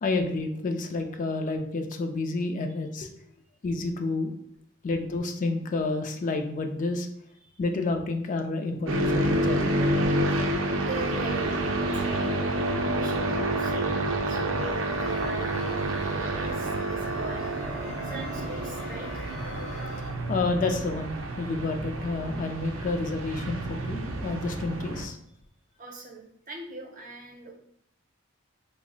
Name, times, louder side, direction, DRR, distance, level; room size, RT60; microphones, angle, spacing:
voice 1, 0.0-3.1 3.6-4.3 4.8-7.1 7.6-9.8 20.0-25.2, left 3 dB, 40° left, 6 dB, 0.3 m, -29 dB
sound 1, 8.9-25.1, right 1 dB, 75° right, 0.5 m, -29 dB
voice 2, 10.8-14.0 14.3-15.5 16.3-17.7 18.0-19.3 25.8-27.5, right 2 dB, 45° right, 1 dB, 0.7 m, -41 dB
sound 2, 14.5-20.1, left 3 dB, 75° left, 0.7 m, -44 dB
3.4 x 2.0 x 3.8 m, 0.75 s
head